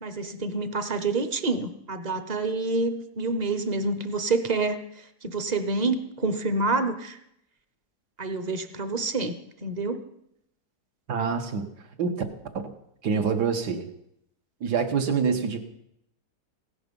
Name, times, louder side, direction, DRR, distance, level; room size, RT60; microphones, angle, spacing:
voice 1, 0.0-4.8 5.2-7.2 8.2-9.3 9.6-10.0, right 3 dB, 40° right, 10 dB, 0.6 m, -27 dB
voice 2, 11.1-11.7 12.0-12.2 12.6-12.7 13.0-13.9 14.6-15.6, right 6 dB, 80° right, 5 dB, 1.7 m, -26 dB
16.0 x 11.0 x 5.3 m, 0.78 s
omnidirectional pair, 1.7 m